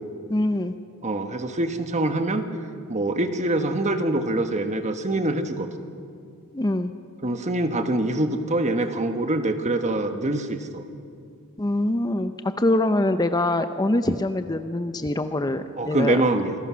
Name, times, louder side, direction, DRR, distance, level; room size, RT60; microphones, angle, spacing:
voice 1, 0.3-0.7 6.5-6.9 11.6-16.2, left 1 dB, 15° left, 9 dB, 0.6 m, -24 dB
voice 2, 1.0-2.5 2.9-5.7 7.2-10.8 15.8-16.6, right 2 dB, 30° right, 7 dB, 1.4 m, -24 dB
28.0 x 20.5 x 6.2 m, 2.4 s
head